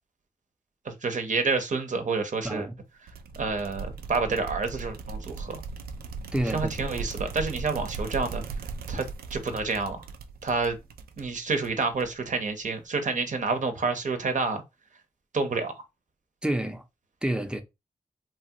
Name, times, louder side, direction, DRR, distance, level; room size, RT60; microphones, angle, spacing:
voice 1, 0.9-2.7 3.4-5.6 6.5-8.4 8.9-10.0 10.4-10.8 11.2-14.6 15.3-15.7, right 4 dB, 55° right, 0.8 m, -28 dB
voice 2, 2.4-2.8 6.3-6.7 16.4-16.8 17.2-17.6, right 1 dB, 5° right, 0.6 m, -28 dB
sound 1, 3.1-12.3, right 4 dB, 85° right, 0.4 m, -38 dB
3.1 x 2.3 x 2.8 m
supercardioid pair, 45°, 15 cm